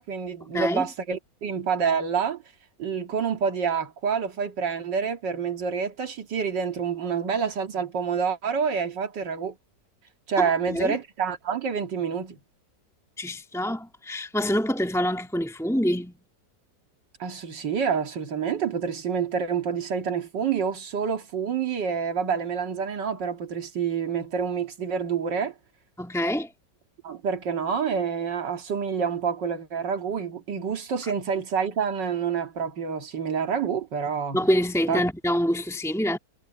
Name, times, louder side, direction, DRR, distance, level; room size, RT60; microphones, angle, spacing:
voice 1, 0.0-2.4 2.8-9.6 10.3-12.4 17.2-25.6 27.0-34.4 34.9-35.0, right 6 dB, 80° right, 2.6 m, -27 dB
voice 2, 0.5-0.8 10.4-10.9 13.2-16.2 26.0-26.5 34.3-36.2, equal, ahead, 2.6 m, -26 dB
omnidirectional pair, 1.9 m